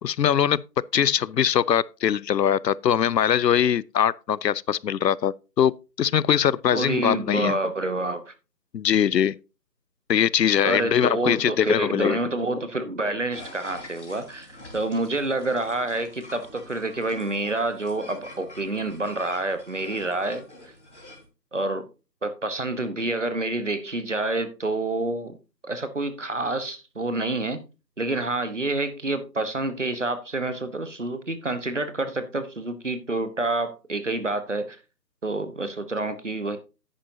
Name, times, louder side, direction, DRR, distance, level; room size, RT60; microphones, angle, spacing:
voice 1, 0.0-7.6 8.7-9.4 10.1-12.2, left 9 dB, 80° left, 0.5 m, -22 dB
voice 2, 6.7-8.3 10.6-20.4 21.5-21.9 22.2-25.4 25.6-27.6 28.0-34.8 35.2-36.6, right 2 dB, 45° right, 1.1 m, -28 dB
sound 1, 13.3-21.3, left 1 dB, 45° left, 3.8 m, -45 dB
10.0 x 8.9 x 2.7 m
figure-of-eight pair, 180°, 49 cm